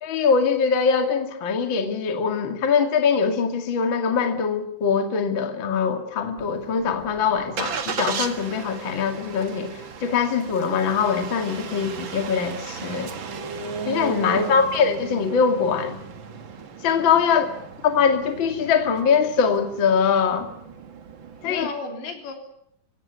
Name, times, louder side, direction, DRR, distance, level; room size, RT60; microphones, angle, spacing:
voice 1, 0.0-13.1 13.9-16.0 16.8-17.5 17.8-20.5 21.4-21.7, left 6 dB, 35° left, 6 dB, 2.2 m, -22 dB
Engine starting, 6.4-21.6, right 5 dB, 75° right, 1.1 m, -35 dB
voice 2, 21.5-22.3, left 4 dB, 80° left, 4 dB, 5.8 m, -34 dB
27.0 x 16.5 x 9.5 m, 0.75 s
omnidirectional pair, 5.0 m